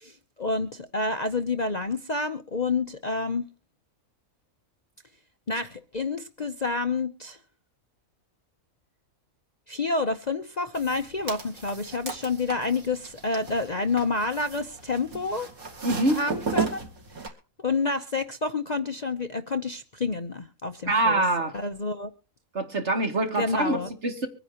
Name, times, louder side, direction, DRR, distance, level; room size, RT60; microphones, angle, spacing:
voice 1, 0.0-3.5 5.5-7.4 9.7-15.5 16.1-16.8 17.2-17.3 17.6-21.2 21.5-22.1 23.4-23.9, left 3 dB, 35° left, 8 dB, 0.8 m, -29 dB
sound 1, 10.7-17.3, right 5 dB, 85° right, 2.8 m, -35 dB
voice 2, 15.8-16.2 20.9-21.5 22.5-23.8 24.0-24.3, right 2 dB, 55° right, 4 dB, 2.6 m, -24 dB
24.0 x 10.0 x 2.9 m, 0.36 s
omnidirectional pair, 1.4 m